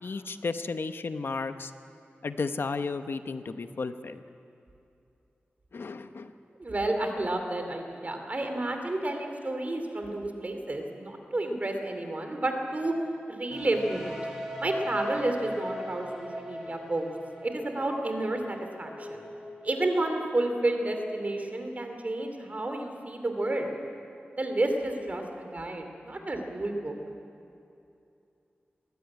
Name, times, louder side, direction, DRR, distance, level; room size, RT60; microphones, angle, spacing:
voice 1, 0.0-1.7 2.2-4.2 5.7-6.3, left 4 dB, 70° left, 9 dB, 0.9 m, -33 dB
voice 2, 6.6-12.9 13.3-14.2 14.6-17.1 17.4-19.2 19.6-23.7 24.4-26.9, right 2 dB, 40° right, 4 dB, 2.6 m, -31 dB
sound 1, 13.5-21.2, equal, 10° right, 4.8 m, -39 dB
21.0 x 15.0 x 9.8 m, 2.7 s
wide cardioid pair, 95°, 4 cm